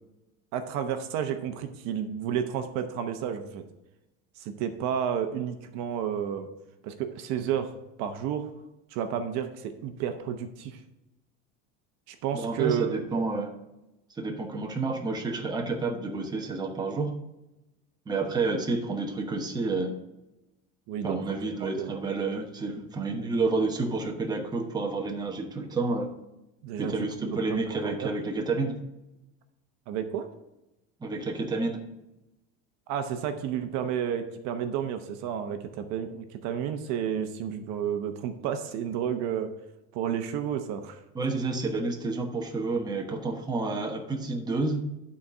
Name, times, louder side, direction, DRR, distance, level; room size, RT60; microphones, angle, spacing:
voice 1, 0.5-3.6 4.4-6.5 6.8-7.7 8.0-8.5 8.9-10.8 12.1-13.0 20.9-21.4 21.8-21.9 26.6-26.9 27.2-28.1 29.9-30.3 32.9-39.5 39.9-41.0, right 8 dB, 60° right, 8 dB, 0.9 m, -31 dB
voice 2, 12.3-13.5 14.2-17.1 18.1-19.9 21.0-26.1 26.8-28.8 31.0-31.8 41.1-44.8, right 3 dB, 15° right, 2 dB, 1.0 m, -29 dB
11.5 x 4.2 x 4.9 m, 0.96 s
cardioid pair, 140°, 31 cm